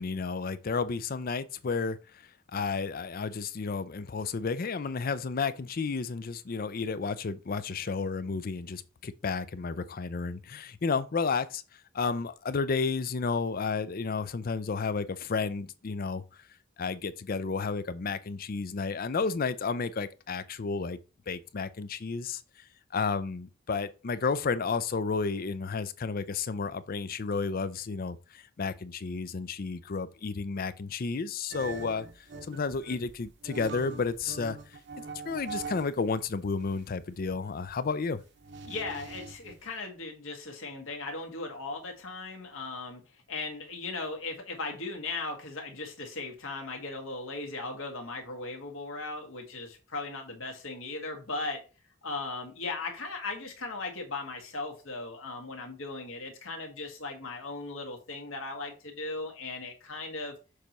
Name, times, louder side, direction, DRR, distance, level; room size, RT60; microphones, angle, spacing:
voice 1, 0.0-2.0 2.5-11.6 11.9-16.2 16.8-21.0 21.3-22.4 22.9-32.1 32.5-34.6 35.3-38.2, left 4 dB, 45° left, 0.5 m, -32 dB
sound 1, 31.5-35.9 36.2-39.6, right 4 dB, 55° right, 0.9 m, -43 dB
voice 2, 38.6-43.0 43.3-51.6 52.0-60.4, left 3 dB, 75° left, 1.6 m, -37 dB
6.5 x 3.0 x 5.3 m
head